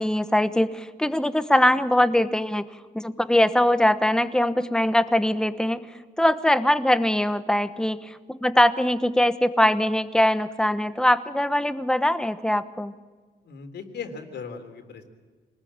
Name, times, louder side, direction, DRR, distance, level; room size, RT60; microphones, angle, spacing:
voice 1, 0.0-2.6 2.9-5.8 6.2-12.9, left 1 dB, 5° left, 11 dB, 1.1 m, -22 dB
voice 2, 13.4-15.1, left 5 dB, 75° left, 6 dB, 3.6 m, -38 dB
26.5 x 20.0 x 8.8 m, 1.4 s
cardioid pair, 125°, 18 cm